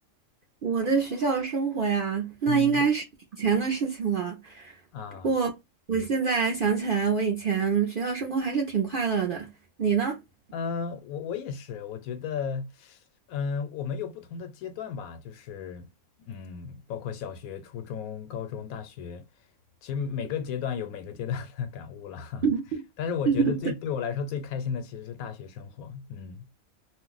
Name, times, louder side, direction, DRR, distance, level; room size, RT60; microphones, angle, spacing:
voice 1, 0.6-3.0 3.4-4.8 5.2-5.5 5.9-9.5 9.8-10.2 22.4-22.8 23.3-23.6, right 6 dB, 65° right, 0.5 m, -26 dB
voice 2, 2.5-2.9 4.9-5.3 10.5-13.0 13.3-15.9 16.2-19.3 19.8-22.4 23.0-26.5, left 6 dB, 90° left, 1.1 m, -34 dB
2.4 x 2.1 x 3.8 m
omnidirectional pair, 1.5 m